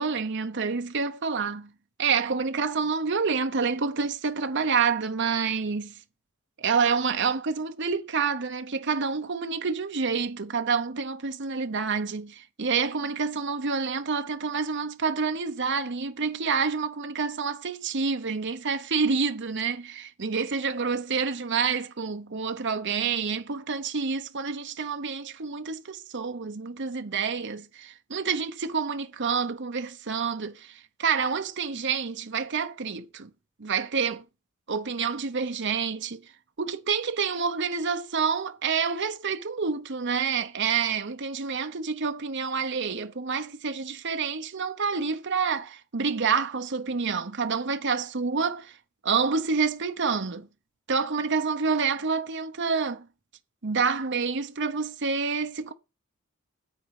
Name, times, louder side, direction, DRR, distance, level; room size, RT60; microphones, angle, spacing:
voice 1, 0.0-1.7 2.0-5.9 6.6-33.3 33.6-34.2 34.7-36.2 36.6-48.8 49.0-50.5 50.9-53.1 53.6-55.7, right 5 dB, 60° right, 0.9 m, -28 dB
9.4 x 8.0 x 4.9 m
head